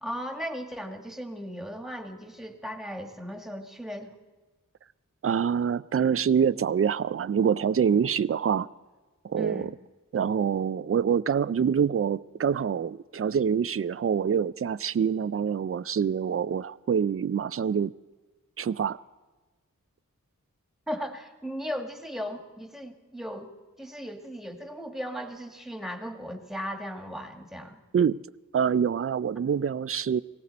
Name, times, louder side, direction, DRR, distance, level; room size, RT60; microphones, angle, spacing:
voice 1, 0.0-4.1 9.4-9.8 20.9-23.5 23.8-27.8, equal, ahead, 1.9 m, -37 dB
voice 2, 5.2-8.7 9.2-9.7 10.1-17.9 18.6-19.0 27.9-28.2 28.5-30.2, right 7 dB, 45° right, 0.4 m, -25 dB
19.0 x 17.5 x 4.2 m
wide cardioid pair, 40°, 33 cm